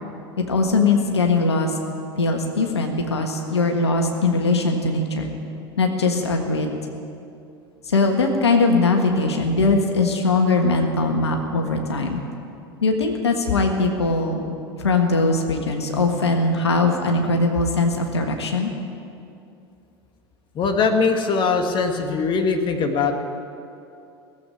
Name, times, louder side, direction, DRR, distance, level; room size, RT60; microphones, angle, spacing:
voice 1, 0.5-1.8 2.2-5.3 5.8-6.7 7.9-12.2 12.8-18.7, left 3 dB, 85° left, 3 dB, 1.5 m, -21 dB
voice 2, 20.5-23.1, left 4 dB, 35° left, 5 dB, 1.5 m, -21 dB
17.0 x 8.2 x 9.8 m, 2.6 s
hypercardioid pair, 85°, 14 cm